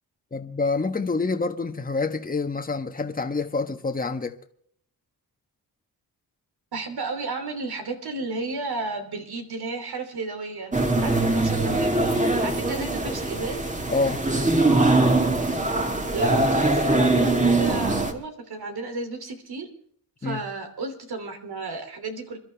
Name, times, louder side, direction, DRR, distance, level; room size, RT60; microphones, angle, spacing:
voice 1, 0.3-4.4 13.9-14.2 20.2-20.4, left 3 dB, 20° left, 1.3 m, -27 dB
voice 2, 6.7-10.7 11.0-13.6 15.7-19.7 20.2-22.4, right 3 dB, 80° right, 3.2 m, -33 dB
sound 1, 10.7-18.1, right 2 dB, 20° right, 2.1 m, -22 dB
28.5 x 12.0 x 3.5 m
cardioid pair, 90°, 38 cm